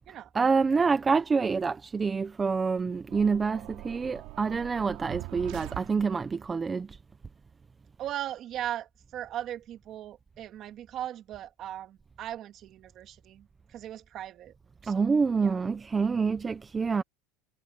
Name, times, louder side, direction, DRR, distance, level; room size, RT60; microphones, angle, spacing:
voice 1, 0.3-7.0 14.8-17.0, right 5 dB, 15° right, 0.7 m, -27 dB
sound 1, 3.1-6.5, right 20 dB, 60° right, 3.0 m, -43 dB
voice 2, 8.0-14.5 14.8-15.1 15.4-15.5, right 11 dB, 40° right, 2.6 m, -38 dB
supercardioid pair, 145°, 0 cm